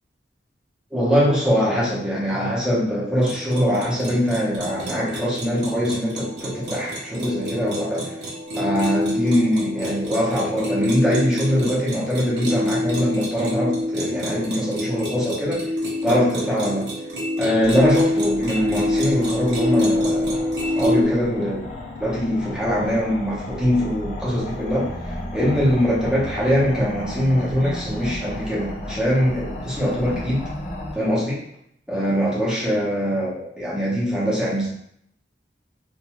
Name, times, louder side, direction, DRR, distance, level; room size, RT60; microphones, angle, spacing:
voice 1, 0.9-8.1 8.5-15.6 16.0-16.9 17.4-20.5 20.7-21.7 22.0-30.4 30.9-31.4 31.9-34.7, equal, 5° right, -7 dB, 0.8 m, -22 dB
sound 1, 3.2-21.0, left 1 dB, 70° right, 0.7 m, -26 dB
sound 2, 17.6-31.0, left 1 dB, 40° left, 0.4 m, -34 dB
2.5 x 2.2 x 3.0 m, 0.72 s
head